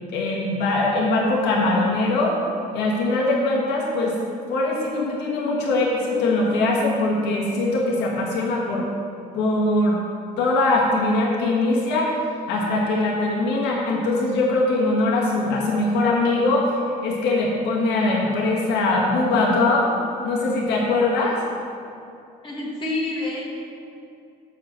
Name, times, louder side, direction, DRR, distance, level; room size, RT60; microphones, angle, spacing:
voice 1, 0.1-2.4 2.7-4.2 4.5-8.9 9.3-10.0 10.4-12.1 12.5-19.9 20.2-21.4, left 2 dB, 85° left, -3 dB, 1.4 m, -21 dB
voice 2, 22.4-23.4, left 2 dB, 30° left, -5 dB, 1.6 m, -27 dB
6.9 x 5.1 x 6.4 m, 2.6 s
cardioid pair, 110°, 17 cm